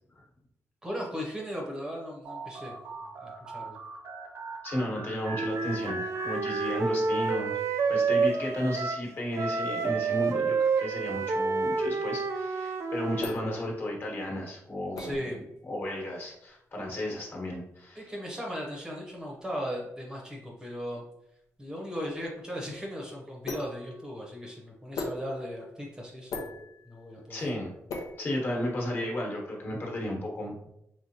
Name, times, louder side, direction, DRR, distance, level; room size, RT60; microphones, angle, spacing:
voice 1, 0.8-2.7 3.2-3.8 15.0-15.4 17.9-21.0 21.6-26.6 26.8-27.5, equal, 15° right, -2 dB, 0.8 m, -37 dB
sound 1, 2.2-7.4, right 2 dB, 75° right, 0.9 m, -40 dB
voice 2, 4.6-7.6 7.9-15.2 15.7-18.0 27.3-27.7 28.2-30.5, left 1 dB, 40° left, -1 dB, 1.2 m, -33 dB
Wind instrument woodwind instrument, 5.3-9.1 9.3-13.3, right 4 dB, 55° right, 0.4 m, -29 dB
sound 2, 12.6-29.0, left 3 dB, 90° left, 0.8 m, -43 dB
5.0 x 3.3 x 2.8 m, 0.80 s
wide cardioid pair, 155°, 6 cm